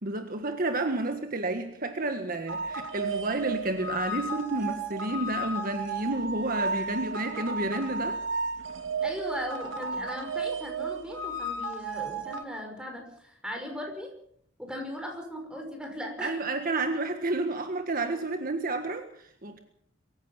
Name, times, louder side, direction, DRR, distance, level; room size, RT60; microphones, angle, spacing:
voice 1, 0.0-8.2 16.2-19.6, right 2 dB, 45° right, 6 dB, 1.6 m, -30 dB
sound 1, 2.5-12.4, right 3 dB, 70° right, 2.3 m, -33 dB
voice 2, 9.0-14.1 14.6-16.5, equal, 5° right, 3 dB, 5.7 m, -38 dB
23.5 x 15.5 x 7.2 m, 0.66 s
head